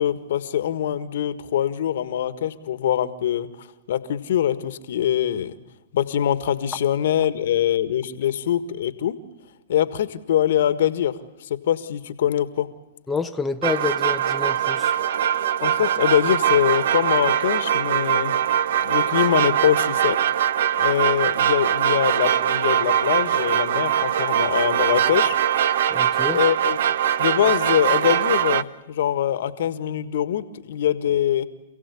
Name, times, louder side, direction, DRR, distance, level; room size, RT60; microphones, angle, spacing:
voice 1, 0.0-5.6 5.9-9.2 9.7-12.7 15.6-18.4 18.8-20.2 20.7-25.4 26.3-26.8 27.2-31.4, left 10 dB, 65° left, 13 dB, 1.6 m, -23 dB
voice 2, 13.1-14.9 25.9-26.4, left 4 dB, 10° left, 4 dB, 1.0 m, -28 dB
sound 1, 13.6-28.6, right 10 dB, 65° right, 0.8 m, -22 dB
28.5 x 16.5 x 8.4 m, 1.1 s
hypercardioid pair, 125°, 0 cm